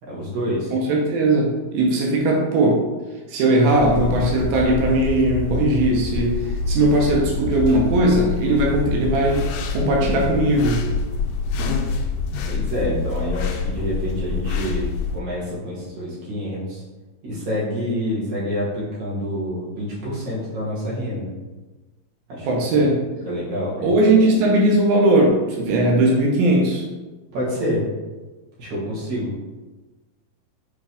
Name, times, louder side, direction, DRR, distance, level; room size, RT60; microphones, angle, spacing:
voice 1, 0.0-0.7 12.5-16.8 17.2-21.3 22.3-22.5 22.7-22.8 23.3-23.9 27.3-27.8 28.6-29.3, equal, 60° right, -7 dB, 2.5 m, -27 dB
voice 2, 0.7-2.8 3.3-9.4 9.7-10.8 22.4-22.9 23.8-26.8, right 1 dB, 85° right, -1 dB, 2.8 m, -18 dB
sound 1, 3.7-15.2, left 4 dB, 80° left, 2.2 m, -26 dB
7.7 x 3.7 x 3.4 m, 1.2 s
omnidirectional pair, 4.1 m